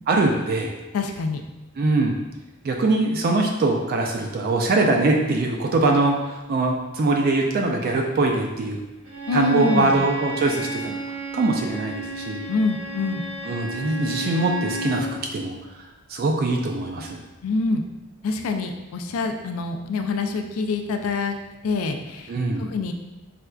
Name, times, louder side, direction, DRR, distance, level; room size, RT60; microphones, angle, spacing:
voice 1, 0.1-0.7 1.8-2.2 2.6-6.2 6.5-8.8 9.3-11.0 11.3-12.5 13.4-15.6 16.1-17.2 22.3-22.8, right 2 dB, 45° right, 1 dB, 0.3 m, -22 dB
voice 2, 0.9-1.4 9.3-10.0 12.5-13.2 17.4-17.8 18.2-21.4 21.6-22.3 22.6-22.9, left 3 dB, 70° left, 5 dB, 0.3 m, -25 dB
Bowed string instrument, 9.1-15.1, right 1 dB, 70° right, 0.7 m, -32 dB
4.2 x 2.4 x 2.2 m, 1.1 s
head